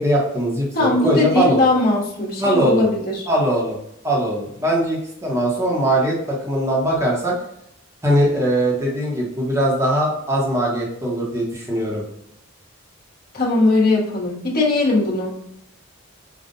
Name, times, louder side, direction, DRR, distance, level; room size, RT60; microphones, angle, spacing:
voice 1, 0.0-1.6 2.4-2.8 3.3-3.8 4.0-7.3 8.0-12.0, right 1 dB, 15° right, -4 dB, 1.0 m, -20 dB
voice 2, 0.7-3.3 13.3-15.3, left 2 dB, 45° left, -3 dB, 1.3 m, -19 dB
5.3 x 2.4 x 2.6 m, 0.76 s
head